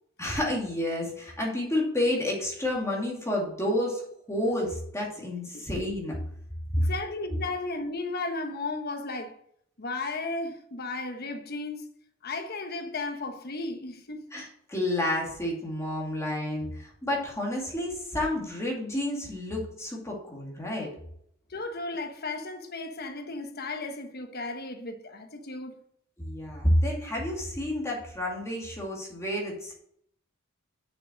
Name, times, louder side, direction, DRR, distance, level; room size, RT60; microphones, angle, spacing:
voice 1, 0.2-6.2 14.3-20.9 26.2-29.7, left 1 dB, 15° left, 2.4 m, -30 dB
voice 2, 6.8-9.4 9.8-11.9 12.2-14.3 21.5-25.7, left 3 dB, 50° left, 1.1 m, -35 dB
6.7 x 6.2 x 7.4 m
head